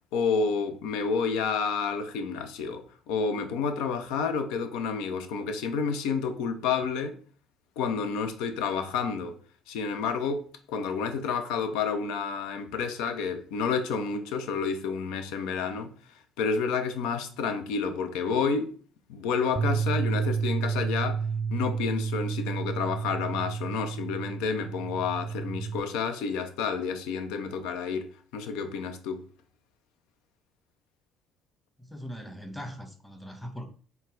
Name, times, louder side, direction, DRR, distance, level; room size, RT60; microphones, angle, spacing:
voice 1, 0.1-7.2 7.8-9.4 9.7-15.9 16.4-18.7 19.1-21.2 21.5-29.3, left 5 dB, 70° left, 0.5 m, -30 dB
Bass guitar, 19.6-25.8, right 6 dB, 35° right, 0.4 m, -30 dB
voice 2, 31.8-33.7, equal, 5° left, 1.0 m, -40 dB
3.9 x 2.2 x 3.8 m
hypercardioid pair, 55°, 0 cm